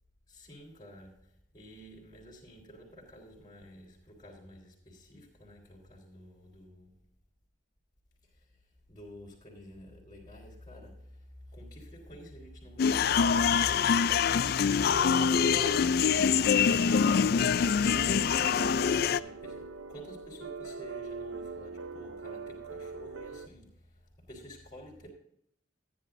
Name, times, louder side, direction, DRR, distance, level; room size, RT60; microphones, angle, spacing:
voice 1, 0.3-7.0 8.2-8.6 8.9-25.1, equal, 20° left, 3.7 m, -49 dB
sound 1, 12.8-19.2, left 6 dB, 50° left, 0.3 m, -25 dB
sound 2, 14.8-23.5, right 2 dB, 75° right, 0.7 m, -41 dB
14.5 x 10.0 x 2.6 m
head